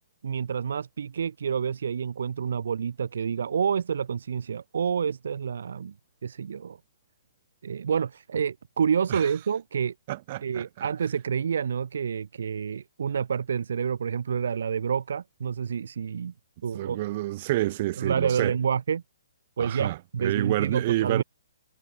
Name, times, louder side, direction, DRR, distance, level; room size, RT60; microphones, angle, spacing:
voice 1, 0.2-5.9 6.2-6.8 7.6-9.9 10.4-16.3 16.6-17.0 18.0-19.0 19.6-21.2, right 7 dB, 70° right, 2.6 m, -28 dB
voice 2, 10.1-10.9 16.7-18.5 19.6-21.2, right 16 dB, 35° right, 1.7 m, -28 dB
hypercardioid pair, 150°, 0 cm